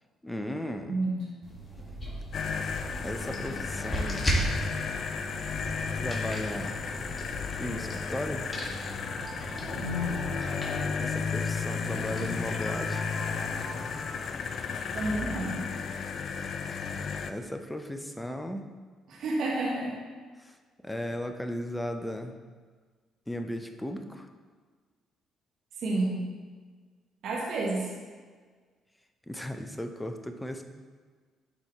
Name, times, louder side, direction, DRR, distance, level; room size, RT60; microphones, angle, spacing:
voice 1, 0.2-1.0 3.0-4.3 6.0-6.8 7.6-8.5 11.0-13.1 15.9-16.0 17.1-18.7 20.4-20.5 20.8-22.4 23.3-24.3 29.3-30.6, left 1 dB, 10° left, 6 dB, 0.8 m, -36 dB
voice 2, 0.9-1.2 9.7-10.2 11.8-12.3 14.9-15.6 19.1-19.9 25.8-26.2 27.2-27.9, right 1 dB, 60° right, -3 dB, 1.5 m, -30 dB
sound 1, 1.4-13.6, right 1 dB, 25° left, 1.9 m, -37 dB
sound 2, 2.3-17.3, left 6 dB, 55° left, 0.4 m, -33 dB
sound 3, 7.6-15.3, right 2 dB, 20° right, 1.2 m, -47 dB
11.5 x 4.5 x 3.2 m, 1.5 s
hypercardioid pair, 45°, 0 cm